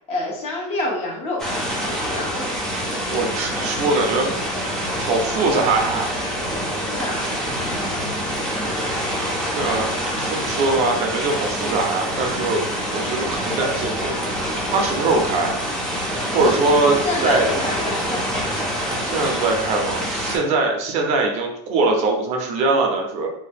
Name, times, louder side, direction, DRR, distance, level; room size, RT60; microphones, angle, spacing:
voice 1, 0.1-1.5 1.8-2.5 6.9-7.4 16.8-18.4, left 2 dB, 35° left, -1 dB, 0.8 m, -27 dB
sound 1, 1.4-20.4, equal, 5° left, 0.5 m, -26 dB
voice 2, 3.1-4.3 5.0-6.1 9.5-12.6 12.9-14.4 14.7-15.6 16.3-17.0 17.2-17.5 19.0-23.3, right 3 dB, 40° right, 2 dB, 0.5 m, -22 dB
2.7 x 2.1 x 3.4 m, 0.76 s
supercardioid pair, 145°, 17 cm